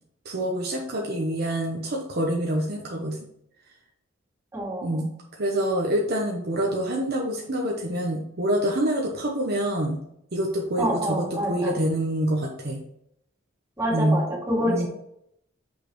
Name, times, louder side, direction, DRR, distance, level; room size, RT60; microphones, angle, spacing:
voice 1, 0.2-3.2 4.8-5.1 5.4-10.0 10.3-12.8 13.9-14.2 14.6-14.9, right 1 dB, 50° right, 0 dB, 0.9 m, -26 dB
voice 2, 4.5-5.1 10.8-11.8 13.8-14.9, equal, 15° right, -5 dB, 2.4 m, -27 dB
6.6 x 5.2 x 3.1 m, 0.75 s
head